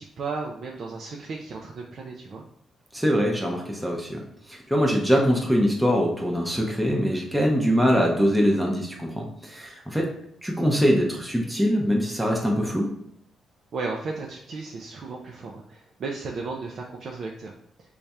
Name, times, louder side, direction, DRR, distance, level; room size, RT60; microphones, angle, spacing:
voice 1, 0.0-2.4 13.7-17.5, right 4 dB, 60° right, -1 dB, 0.4 m, -34 dB
voice 2, 2.9-10.1 10.4-12.9, equal, 5° right, -1 dB, 0.6 m, -23 dB
3.3 x 2.3 x 4.1 m, 0.71 s
cardioid pair, 85°, 0 cm